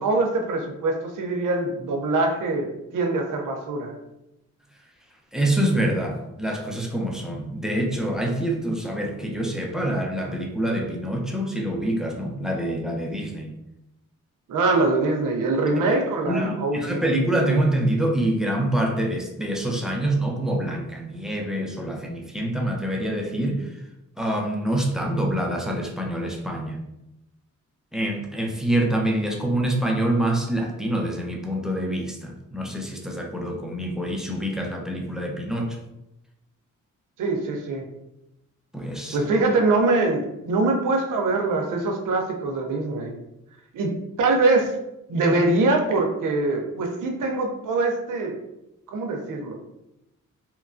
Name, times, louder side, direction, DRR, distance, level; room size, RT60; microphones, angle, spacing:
voice 1, 0.0-3.9 14.5-17.0 37.2-37.8 39.1-43.2 43.7-44.7 45.1-48.4 48.9-49.6, right 2 dB, 75° right, 3 dB, 0.6 m, -23 dB
voice 2, 5.3-13.5 16.3-23.7 24.2-26.8 27.9-35.8 38.7-39.2, right 1 dB, ahead, 1 dB, 0.5 m, -26 dB
2.9 x 2.2 x 2.5 m, 0.88 s
cardioid pair, 65°, 32 cm